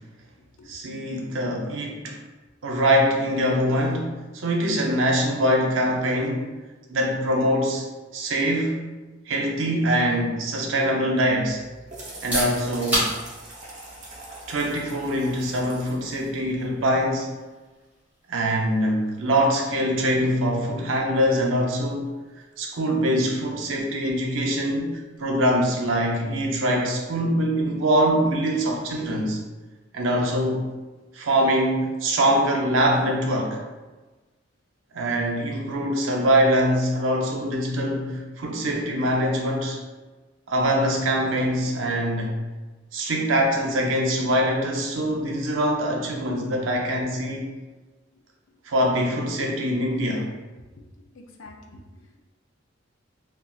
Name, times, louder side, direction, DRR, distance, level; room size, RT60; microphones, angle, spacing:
voice 1, 0.7-2.2 2.6-6.5 6.9-7.9 8.1-8.9 9.3-11.6 12.2-13.1 14.5-17.3 18.3-22.1 22.6-29.4 29.9-30.7 31.1-33.6 34.9-39.8 40.5-42.4 42.9-47.5 48.7-50.3, equal, 90° right, 0 dB, 0.6 m, -23 dB
sound 1, 11.4-17.0, right 1 dB, 40° right, 0.8 m, -43 dB
sound 2, 12.0-27.7, equal, 10° right, 1.5 m, -37 dB
voice 2, 51.1-52.2, left 2 dB, 90° left, 2 dB, 0.5 m, -47 dB
3.7 x 2.3 x 2.3 m, 1.2 s
head